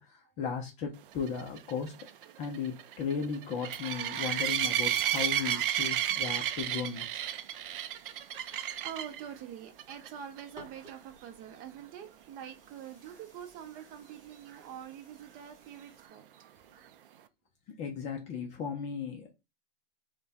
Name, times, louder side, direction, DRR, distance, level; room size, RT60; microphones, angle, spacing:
voice 1, 0.0-1.9 2.4-7.1 17.8-19.3, left 6 dB, 25° left, 0.5 m, -36 dB
sound 1, 1.3-9.2 9.8-10.1 10.4-10.5 10.9-11.0 14.5-14.6, right 10 dB, 65° right, 0.5 m, -32 dB
sound 2, 3.7-16.1, right 1 dB, 15° right, 1.6 m, -58 dB
voice 2, 8.3-16.2, right 9 dB, 30° right, 0.7 m, -45 dB
3.3 x 2.2 x 4.1 m
hypercardioid pair, 135°, 30 cm